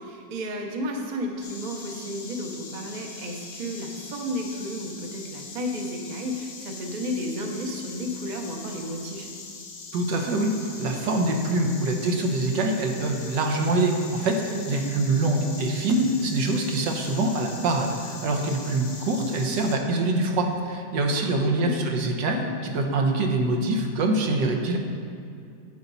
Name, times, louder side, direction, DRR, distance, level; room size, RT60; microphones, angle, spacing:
voice 1, 0.0-9.3 14.5-14.9 21.2-22.0, equal, 35° right, 2 dB, 0.7 m, -32 dB
Insect, 1.4-19.8, left 4 dB, 80° left, 1.8 m, -42 dB
voice 2, 9.9-24.8, right 2 dB, 75° right, 2 dB, 1.6 m, -25 dB
10.0 x 8.0 x 4.1 m, 2.4 s
omnidirectional pair, 2.0 m